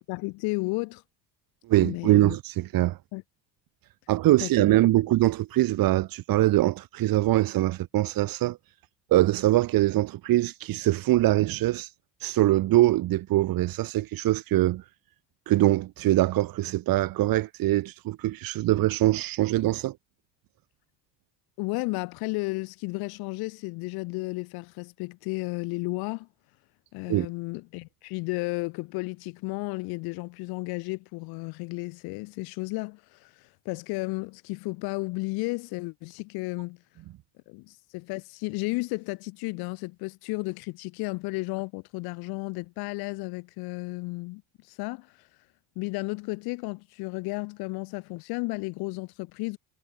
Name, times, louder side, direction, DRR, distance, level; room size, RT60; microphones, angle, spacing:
voice 1, 0.1-1.0 1.8-2.4 3.1-3.2 4.4-4.5 21.6-26.3 26.9-36.8 37.5-44.4 44.7-45.1 45.8-49.6, left 26 dB, 90° left, 3.9 m, -33 dB
voice 2, 1.7-3.0 4.1-8.6 9.1-11.9 12.2-14.8 15.5-19.9 27.1-27.3, right 16 dB, 70° right, 6.3 m, -23 dB
cardioid pair, 115°, 36 cm